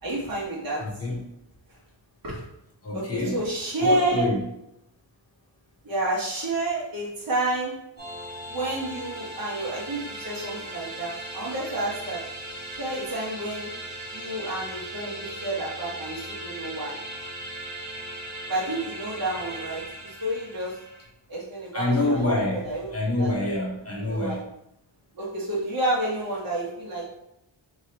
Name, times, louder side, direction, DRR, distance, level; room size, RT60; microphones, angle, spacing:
voice 1, 0.0-0.9 2.2-2.4 2.9-4.3 5.8-7.8 8.5-12.2 12.8-13.7 14.1-16.9 18.5-20.7 21.3-23.3 24.0-24.4 25.1-27.0, right 1 dB, 45° right, -6 dB, 1.2 m, -29 dB
voice 2, 0.8-1.2 2.8-3.4 3.8-4.4 21.7-22.7 22.9-24.4, left 2 dB, 30° left, -3 dB, 0.9 m, -26 dB
sound 1, 8.0-21.1, right 1 dB, 20° right, 1.5 m, -38 dB
4.6 x 3.3 x 2.8 m, 0.82 s
wide cardioid pair, 165°, 46 cm